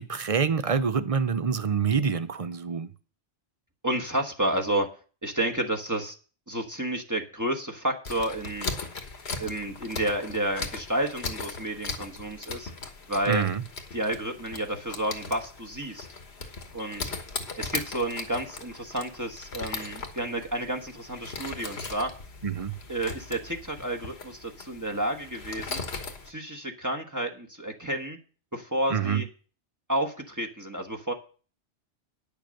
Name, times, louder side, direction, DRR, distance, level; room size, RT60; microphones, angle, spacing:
voice 1, 0.0-2.9 13.3-13.6 22.4-22.7 28.9-29.2, right 6 dB, 40° right, 0.6 m, -26 dB
voice 2, 3.8-4.9 5.2-6.2 6.5-8.7 9.4-12.7 13.1-13.4 13.9-16.1 16.7-17.1 17.6-22.1 22.9-25.8 26.3-28.2 28.5-29.3 29.9-31.1, right 1 dB, 15° right, 1.3 m, -30 dB
sound 1, 8.0-26.3, left 4 dB, 65° left, 1.6 m, -38 dB
10.0 x 6.9 x 6.4 m
omnidirectional pair, 1.2 m